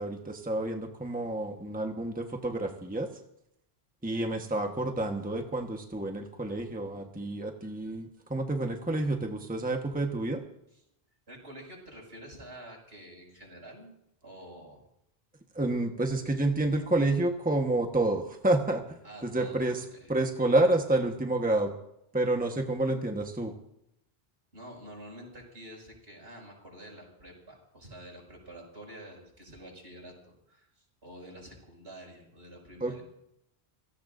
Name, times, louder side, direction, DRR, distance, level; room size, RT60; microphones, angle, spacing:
voice 1, 0.0-3.1 4.0-10.4 15.5-19.8 20.1-21.7 22.1-23.5 32.8-33.0, right 2 dB, 10° right, 3 dB, 1.2 m, -29 dB
voice 2, 11.3-13.9 14.2-14.8 19.0-20.2 24.5-33.0, right 1 dB, 75° right, -1 dB, 6.5 m, -48 dB
29.5 x 17.5 x 2.6 m, 0.77 s
omnidirectional pair, 1.1 m